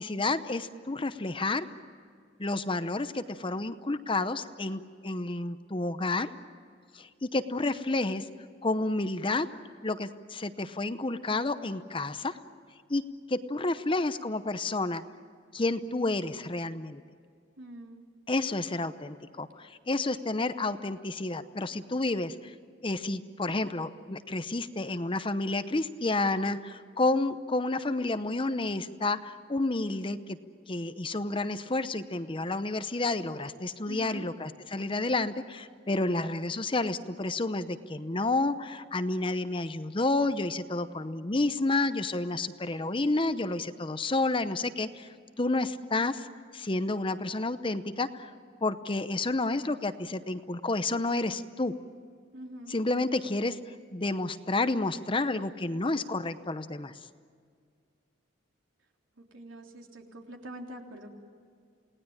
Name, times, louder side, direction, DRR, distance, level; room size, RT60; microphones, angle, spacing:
voice 1, 0.0-1.7 2.4-6.3 6.9-8.3 8.6-9.5 9.8-12.4 12.9-15.0 15.5-17.0 18.3-22.5 22.8-30.4 30.7-45.1 45.4-46.3 46.5-48.3 48.6-51.8 52.7-53.6 53.9-56.9, left 2 dB, 25° left, 11 dB, 0.8 m, -30 dB
voice 2, 17.6-18.0 33.9-34.3 52.3-52.8 59.2-61.1, right 1 dB, 75° right, 2 dB, 3.4 m, -44 dB
29.0 x 19.0 x 8.9 m, 2.2 s
head